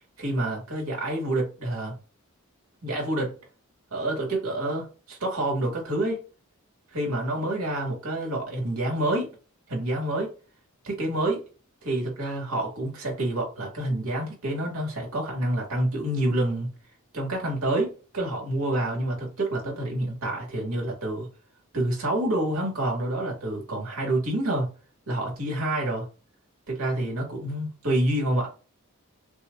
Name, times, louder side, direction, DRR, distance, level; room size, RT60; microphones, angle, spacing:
voice 1, 0.2-1.9 2.8-3.3 3.9-6.2 6.9-9.3 9.7-10.3 10.8-11.4 11.8-16.7 17.1-21.3 21.7-24.7 25.1-26.1 26.7-28.5, right 1 dB, 80° right, 2.1 m, -28 dB
6.1 x 2.5 x 2.6 m
head